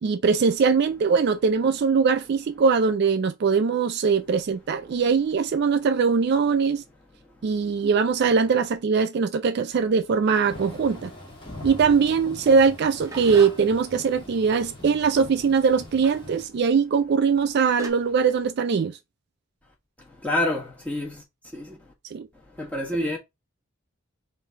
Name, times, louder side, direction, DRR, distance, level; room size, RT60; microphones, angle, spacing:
voice 1, 0.0-6.8 7.4-11.1 11.6-19.0 22.1-22.3, right 5 dB, 50° right, 0.3 m, -21 dB
Thunder / Rain, 10.5-16.5, left 1 dB, 20° left, 1.5 m, -42 dB
sound 1, 12.5-13.9 16.0-16.3 17.3-17.4 17.8-17.9, right 2 dB, 15° right, 0.7 m, -39 dB
voice 2, 20.2-21.1 21.5-21.7 22.6-23.2, left 1 dB, 5° left, 1.3 m, -27 dB
3.7 x 2.7 x 4.6 m
head